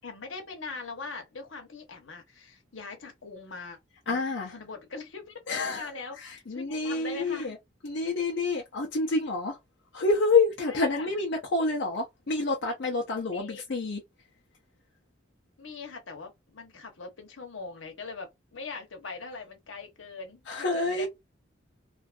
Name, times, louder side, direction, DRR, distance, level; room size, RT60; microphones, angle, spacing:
voice 1, 0.0-3.8 4.1-4.2 4.5-7.5 10.6-11.1 13.3-13.6 15.6-21.1, left 4 dB, 85° left, 0.9 m, -41 dB
voice 2, 4.1-4.5 5.5-5.9 6.2-7.6 7.8-9.6 9.9-14.0 20.5-21.1, left 3 dB, 65° left, 0.6 m, -28 dB
2.5 x 2.4 x 2.4 m
head